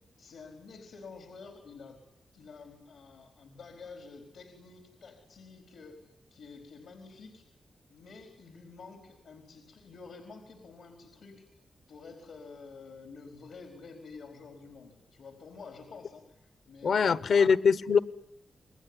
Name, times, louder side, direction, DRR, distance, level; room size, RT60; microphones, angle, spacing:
voice 1, 0.2-2.0 2.3-6.0 6.3-7.4 7.9-11.5 11.9-17.5, left 4 dB, 90° left, 4 dB, 4.5 m, -49 dB
voice 2, 16.8-18.0, left 6 dB, 75° left, 16 dB, 1.0 m, -23 dB
28.5 x 21.0 x 9.9 m, 0.81 s
wide cardioid pair, 120°, 0 cm